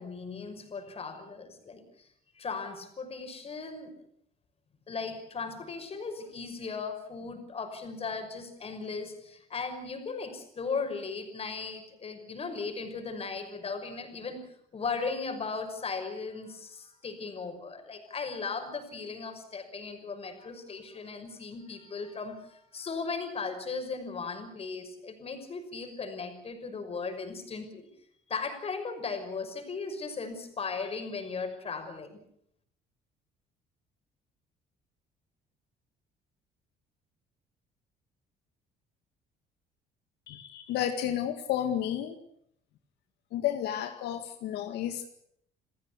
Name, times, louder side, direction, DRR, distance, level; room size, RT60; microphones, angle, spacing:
voice 1, 0.0-2.1 2.3-3.9 4.9-14.4 14.7-27.9 28.3-32.2, left 4 dB, 35° left, 6 dB, 6.0 m, -37 dB
voice 2, 40.3-42.2 43.3-45.1, left 10 dB, 80° left, 7 dB, 2.0 m, -31 dB
29.0 x 15.0 x 8.3 m, 0.71 s
cardioid pair, 110°, 17 cm